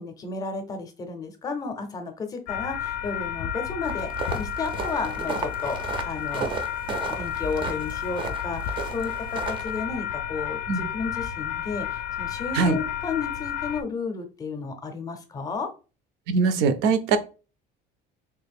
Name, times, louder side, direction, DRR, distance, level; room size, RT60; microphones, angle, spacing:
voice 1, 0.0-4.1 4.4-5.8 6.0-6.5 7.1-15.7, left 4 dB, 20° left, 6 dB, 0.5 m, -32 dB
sound 1, 2.5-13.8, left 10 dB, 90° left, 0.5 m, -32 dB
sound 2, 3.8-9.8, right 5 dB, 30° right, 0.4 m, -34 dB
voice 2, 16.3-17.2, right 5 dB, 85° right, 12 dB, 0.6 m, -22 dB
3.4 x 2.5 x 3.4 m, 0.33 s
cardioid pair, 175°, 18 cm